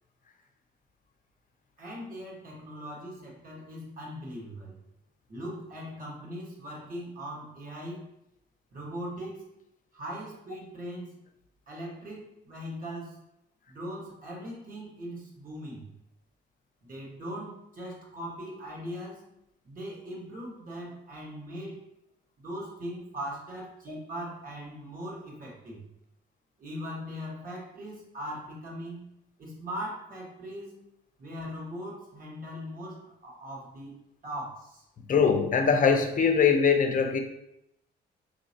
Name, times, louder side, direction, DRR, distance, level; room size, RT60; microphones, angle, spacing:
voice 1, 1.8-4.8 5.3-8.1 8.7-9.4 9.9-11.2 11.7-13.2 13.7-15.9 16.8-19.2 19.6-21.8 22.4-25.8 26.6-29.1 29.4-30.7 31.2-34.8, equal, 45° right, -3 dB, 1.5 m, -40 dB
voice 2, 35.1-37.2, left 6 dB, 45° left, 5 dB, 0.6 m, -22 dB
4.0 x 2.9 x 2.8 m, 0.81 s
cardioid pair, 90°, 20 cm